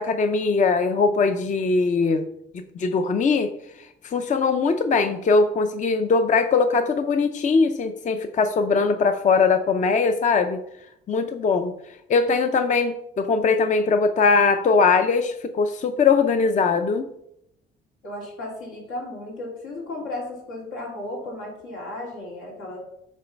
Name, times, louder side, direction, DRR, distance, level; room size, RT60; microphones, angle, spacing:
voice 1, 0.0-2.2 2.8-3.5 4.1-10.6 11.1-11.7 12.1-17.0, left 4 dB, 40° left, 8 dB, 0.5 m, -21 dB
voice 2, 18.0-22.8, left 2 dB, 85° left, -2 dB, 2.6 m, -34 dB
7.5 x 3.2 x 5.1 m, 0.77 s
cardioid pair, 90°, 20 cm